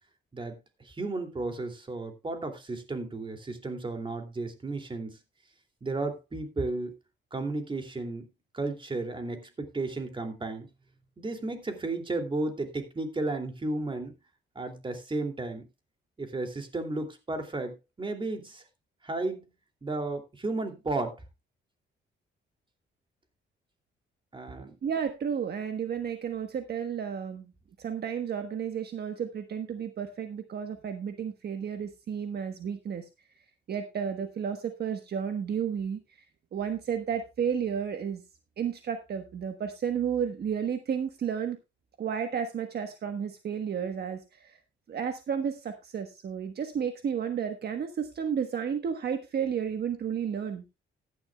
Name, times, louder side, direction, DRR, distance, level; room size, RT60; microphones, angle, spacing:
voice 1, 0.3-5.2 5.8-6.9 7.3-8.3 8.5-10.7 11.2-14.1 14.5-15.7 16.2-18.6 19.0-19.4 19.8-21.2 24.3-24.8, right 2 dB, 25° right, 2.8 m, -33 dB
voice 2, 24.8-27.5 27.8-33.1 33.7-36.0 36.5-38.2 38.6-41.6 42.0-44.6 44.9-50.6, right 7 dB, 55° right, 1.3 m, -32 dB
15.0 x 11.0 x 2.3 m
cardioid pair, 90°, 20 cm